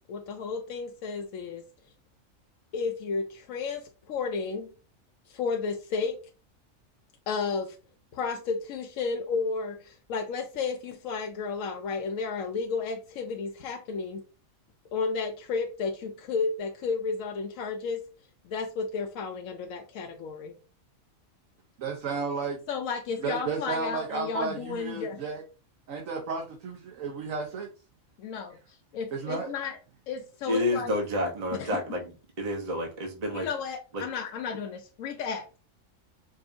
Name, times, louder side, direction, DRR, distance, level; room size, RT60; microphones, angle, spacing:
voice 1, 0.1-1.6 2.7-4.7 5.3-6.2 7.3-7.8 8.1-14.2 14.9-18.0 18.4-20.6 22.7-25.2 28.2-28.6 28.9-29.8 30.1-31.0 31.6-31.8 33.3-35.5, left 5 dB, 80° left, 1.0 m, -32 dB
voice 2, 21.8-22.6 23.2-25.4 25.9-27.7 29.1-29.5, right 5 dB, 80° right, 1.2 m, -33 dB
voice 3, 30.5-33.5 33.9-34.0, left 1 dB, 35° right, 0.9 m, -29 dB
5.2 x 2.6 x 2.5 m
omnidirectional pair, 1.4 m